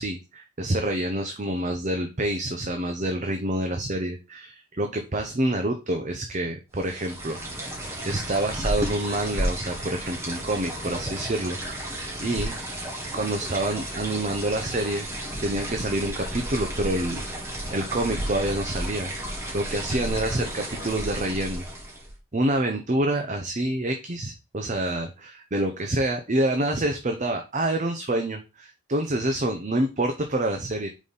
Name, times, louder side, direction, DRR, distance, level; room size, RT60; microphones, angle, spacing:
voice 1, 0.0-11.9 12.2-12.6 13.1-15.1 15.4-17.4 17.7-19.1 19.5-21.6 22.3-30.9, right 1 dB, 35° right, 5 dB, 0.7 m, -27 dB
sound 1, 6.8-22.2, right 1 dB, 15° right, 1.8 m, -33 dB
5.1 x 4.0 x 5.4 m, 0.30 s
head